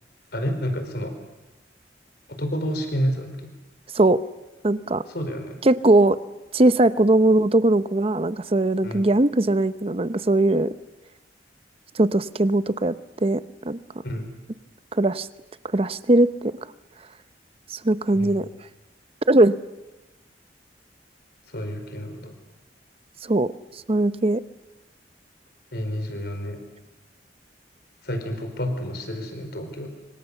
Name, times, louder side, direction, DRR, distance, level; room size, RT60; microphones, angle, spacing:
voice 1, 0.3-1.1 2.3-3.3 5.1-5.6 8.8-9.1 14.0-14.3 18.2-18.3 21.5-22.3 25.7-26.6 28.0-29.9, equal, 60° left, 6 dB, 4.6 m, -29 dB
voice 2, 4.6-5.0 5.6-6.2 6.5-10.7 11.9-13.8 14.9-15.3 15.7-16.6 17.8-18.5 19.3-19.6 23.2-23.5 23.9-24.4, right 2 dB, 35° right, 14 dB, 0.8 m, -20 dB
25.5 x 25.0 x 7.1 m, 1.1 s
head